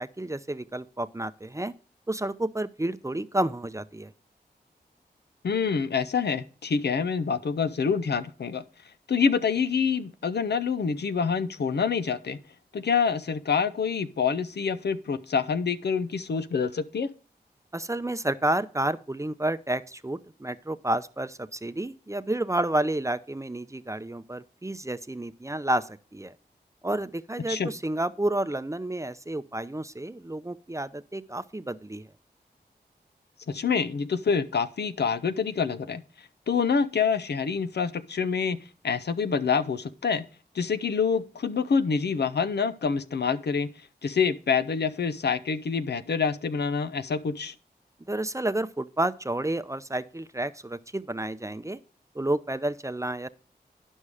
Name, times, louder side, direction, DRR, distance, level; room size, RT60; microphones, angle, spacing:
voice 1, 0.0-1.7 2.1-4.1 17.7-26.3 26.8-32.1 48.1-51.8 52.1-53.3, right 1 dB, 15° right, 0.6 m, -30 dB
voice 2, 5.4-8.6 9.1-12.4 12.7-17.1 27.5-27.7 33.5-36.0 36.5-38.6 38.8-40.2 40.5-43.7 44.0-47.5, left 6 dB, 75° left, 0.7 m, -26 dB
11.5 x 5.4 x 4.9 m
cardioid pair, 40°, 17 cm